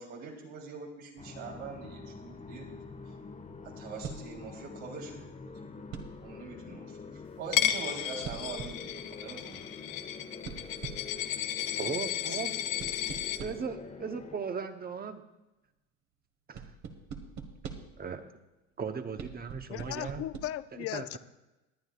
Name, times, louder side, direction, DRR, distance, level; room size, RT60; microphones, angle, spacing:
voice 1, 0.0-2.7 3.8-5.5 6.2-7.0 7.4-9.6, right 4 dB, 80° right, -1 dB, 3.6 m, -43 dB
sound 1, 1.2-14.4, left 4 dB, 20° left, 1.3 m, -46 dB
sound 2, 4.0-4.4 5.9-6.3 8.2-8.9 10.4-11.2 12.8-13.8 16.5-18.0 19.2-20.4, right 6 dB, 45° right, 1.6 m, -43 dB
Coin (dropping), 7.5-13.4, left 11 dB, 90° left, 0.9 m, -33 dB
voice 2, 11.7-12.7 13.4-15.2 16.5-16.7 18.0-18.3 18.8-20.2 20.9-21.2, right 5 dB, 25° right, 8 dB, 1.0 m, -37 dB
voice 3, 19.7-21.2, left 13 dB, 40° left, 14 dB, 0.5 m, -37 dB
22.5 x 9.0 x 2.5 m, 1.0 s
supercardioid pair, 95°, 38 cm